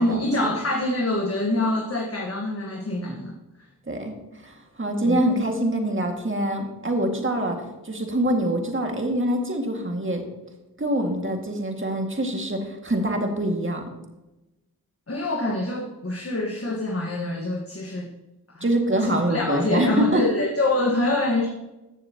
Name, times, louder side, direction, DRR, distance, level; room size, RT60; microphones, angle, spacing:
voice 1, 0.0-3.3 5.1-5.2 15.1-18.1 18.5-18.7 19.0-21.5, left 2 dB, 40° left, 0 dB, 1.5 m, -25 dB
voice 2, 4.4-10.2 10.8-13.8 18.6-20.2, right 1 dB, 35° right, 2 dB, 2.0 m, -25 dB
15.0 x 6.7 x 2.9 m, 1.0 s
cardioid pair, 40°, 35 cm